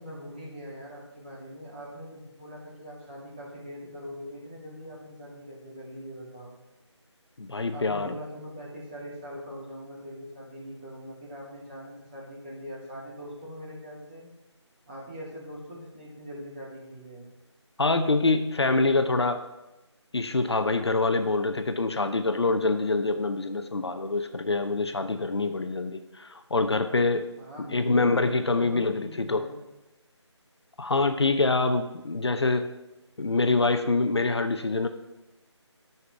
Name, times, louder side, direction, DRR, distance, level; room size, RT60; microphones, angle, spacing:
voice 1, 0.0-6.6 7.7-14.2 14.9-17.3 27.4-29.6, equal, 20° right, -5 dB, 2.4 m, -42 dB
voice 2, 7.4-8.1 17.8-19.4 20.1-27.3 27.7-29.5 30.8-32.7 33.2-34.9, left 3 dB, 60° left, 8 dB, 0.8 m, -25 dB
9.7 x 5.8 x 6.1 m, 0.99 s
figure-of-eight pair, 170°, 15 cm